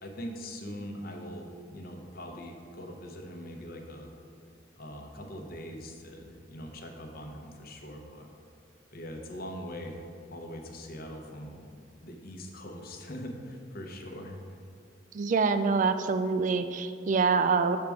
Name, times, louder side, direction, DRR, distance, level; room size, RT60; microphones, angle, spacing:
voice 1, 0.0-4.1 4.8-8.3 8.9-10.0 10.3-11.7 12.0-14.4, equal, 55° left, 3 dB, 0.8 m, -42 dB
voice 2, 15.1-17.8, right 5 dB, 40° right, 10 dB, 0.3 m, -25 dB
6.5 x 3.5 x 6.1 m, 2.3 s
head